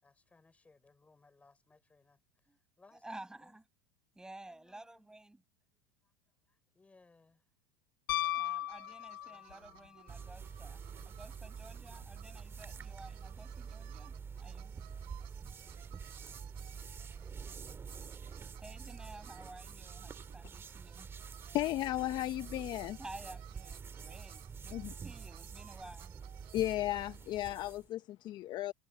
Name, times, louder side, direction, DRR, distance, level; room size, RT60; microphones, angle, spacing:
voice 1, 0.0-2.2 2.8-3.6 4.4-5.2 6.0-6.1 6.5-7.4 9.3-10.0 15.8-15.9, left 3 dB, 10° left, 5.4 m, -66 dB
voice 2, 3.0-3.6 4.2-5.4 8.3-10.8 11.1-14.7 18.6-21.1 23.0-26.1, right 2 dB, 5° right, 7.1 m, -52 dB
Piano, 8.1-9.7 12.0-12.1, left 13 dB, 85° left, 0.6 m, -35 dB
sound 1, 8.2-27.2, right 24 dB, 55° right, 5.1 m, -60 dB
sound 2, 10.1-27.9, right 6 dB, 20° right, 2.0 m, -47 dB
voice 3, 21.5-23.0 24.7-24.9 26.5-28.7, left 15 dB, 45° left, 0.8 m, -35 dB
supercardioid pair, 120°, 11 cm